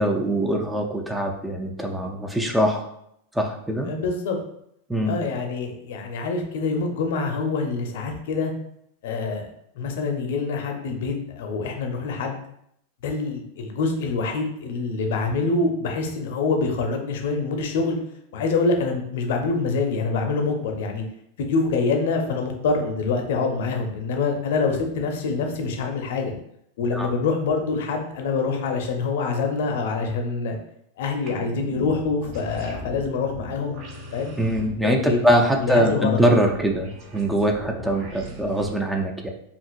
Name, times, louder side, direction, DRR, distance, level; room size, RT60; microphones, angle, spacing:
voice 1, 0.0-2.9 3.3-3.9 4.9-5.2 26.9-27.1 34.4-39.3, right 1 dB, 5° right, 2 dB, 0.5 m, -22 dB
voice 2, 3.9-4.4 5.1-8.5 9.0-9.5 9.7-12.4 13.0-18.0 18.3-21.0 21.4-26.3 26.8-30.6 31.0-33.8 34.1-34.3 34.8-35.2 35.6-36.2, left 4 dB, 55° left, 3 dB, 0.7 m, -25 dB
sound 1, 31.3-38.7, right 1 dB, 40° right, 1.0 m, -39 dB
5.1 x 2.8 x 2.4 m, 0.73 s
figure-of-eight pair, 90°, 0 cm